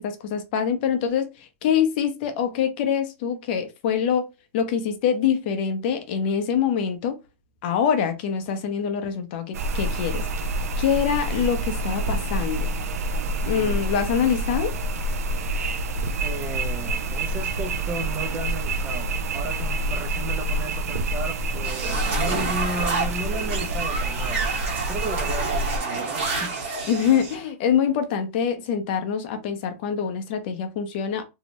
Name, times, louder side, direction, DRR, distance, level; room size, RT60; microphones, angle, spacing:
voice 1, 0.0-4.3 4.5-7.2 7.6-10.3 10.8-12.7 13.5-14.7 26.9-31.3, left 7 dB, 40° left, 0.5 m, -24 dB
sound 1, 9.5-25.8, right 1 dB, 80° right, 0.4 m, -27 dB
voice 2, 13.4-13.8 16.2-24.5 24.9-26.5, right 2 dB, 15° right, 0.4 m, -34 dB
sound 2, 21.6-27.4, right 4 dB, 55° right, 1.3 m, -29 dB
2.7 x 2.1 x 2.8 m
hypercardioid pair, 155°, 8 cm